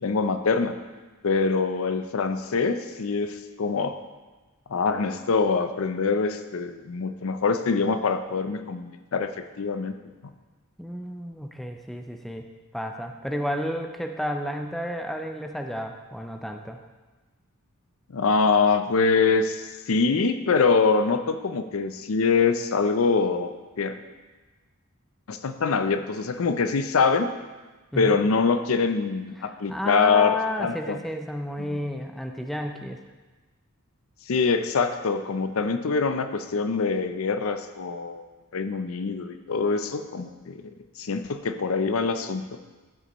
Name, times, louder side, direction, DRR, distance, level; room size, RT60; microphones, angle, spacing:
voice 1, 0.0-0.8 1.2-4.0 4.7-9.9 18.1-24.0 25.3-27.3 28.0-31.0 31.7-31.8 34.3-38.2 38.5-40.6 41.0-42.4, left 4 dB, 70° left, 9 dB, 0.5 m, -24 dB
voice 2, 10.8-12.5 12.7-16.8 27.9-28.2 29.4-33.0, equal, ahead, 4 dB, 0.4 m, -31 dB
12.5 x 6.8 x 3.0 m, 1.3 s
head